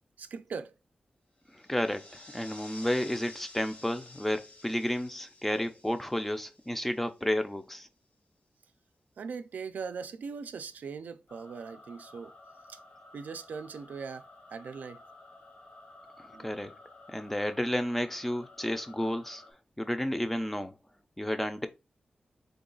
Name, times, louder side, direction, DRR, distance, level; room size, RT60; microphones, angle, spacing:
voice 1, 0.2-0.7 9.2-12.3 12.7-12.8 13.1-15.0 16.3-16.5, right 5 dB, 85° right, 0.3 m, -40 dB
sound 1, 1.4-7.3, left 2 dB, 70° left, 1.9 m, -52 dB
voice 2, 1.5-7.9 16.2-16.7 17.1-19.4 19.8-20.7 21.2-21.7, left 1 dB, 10° left, 0.4 m, -32 dB
sound 2, 11.3-19.5, left 2 dB, 55° left, 1.1 m, -53 dB
3.8 x 2.3 x 3.8 m
wide cardioid pair, 150°, 3 cm